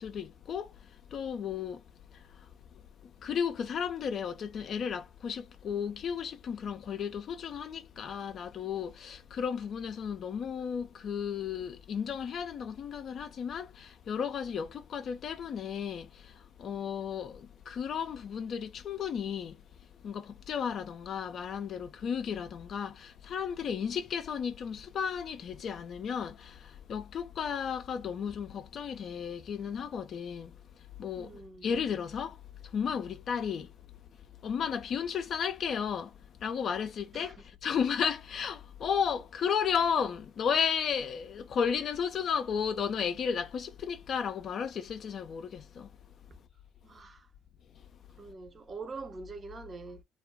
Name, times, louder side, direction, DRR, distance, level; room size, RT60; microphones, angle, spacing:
voice 1, 0.0-1.8 2.1-33.8 34.4-46.0 47.8-48.3, left 7 dB, 55° left, 0.3 m, -34 dB
voice 2, 31.2-31.7 37.1-37.3 46.8-47.3 48.1-50.0, right 4 dB, 35° right, 0.6 m, -44 dB
2.3 x 2.1 x 3.2 m
supercardioid pair, 60°, 0 cm